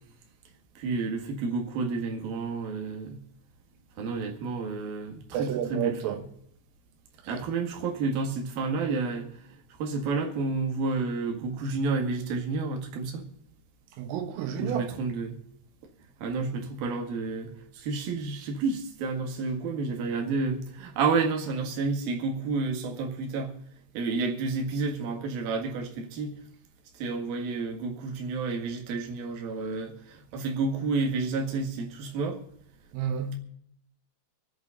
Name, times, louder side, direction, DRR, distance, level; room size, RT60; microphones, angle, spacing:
voice 1, 0.7-3.2 4.0-6.2 7.3-13.2 14.6-15.4 16.2-23.5 23.9-26.3 26.9-32.4, right 4 dB, 55° right, 3.1 m, -30 dB
voice 2, 5.3-6.2 14.0-14.9 32.9-33.4, right 8 dB, 90° right, 3.9 m, -30 dB
25.5 x 8.7 x 4.0 m
omnidirectional pair, 5.7 m